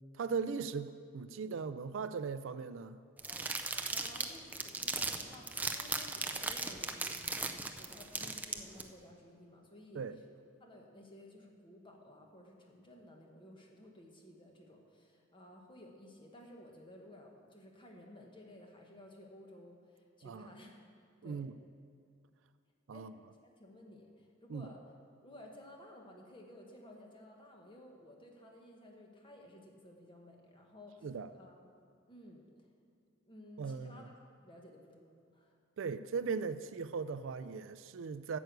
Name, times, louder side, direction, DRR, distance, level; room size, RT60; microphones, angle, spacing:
voice 1, 0.1-3.0 10.0-10.2 20.2-20.5 21.2-21.5 22.9-23.1 24.5-24.7 31.0-31.3 33.6-34.1 35.8-38.4, right 5 dB, 70° right, 13 dB, 0.4 m, -38 dB
sound 1, 3.2-8.8, right 3 dB, 10° right, 0.4 m, -37 dB
voice 2, 3.5-10.1 10.6-20.8 21.2-21.5 22.9-23.1 23.4-24.8 25.2-31.6 32.1-32.5 33.3-34.1 34.4-35.5, left 1 dB, 25° left, 1 dB, 1.3 m, -55 dB
9.0 x 6.2 x 8.0 m, 2.4 s
head